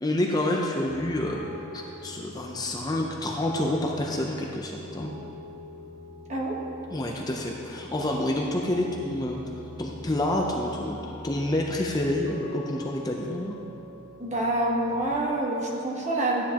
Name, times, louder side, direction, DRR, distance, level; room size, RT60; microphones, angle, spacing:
voice 1, 0.0-1.4 1.7-5.1 6.9-9.4 9.8-11.0 11.2-13.5, left 1 dB, 20° left, 0 dB, 0.5 m, -28 dB
sound 1, 0.8-15.2, left 1 dB, 55° left, 1.4 m, -45 dB
voice 2, 14.2-16.4, right 1 dB, 35° right, -3 dB, 1.3 m, -27 dB
13.0 x 9.3 x 2.9 m, 2.9 s
head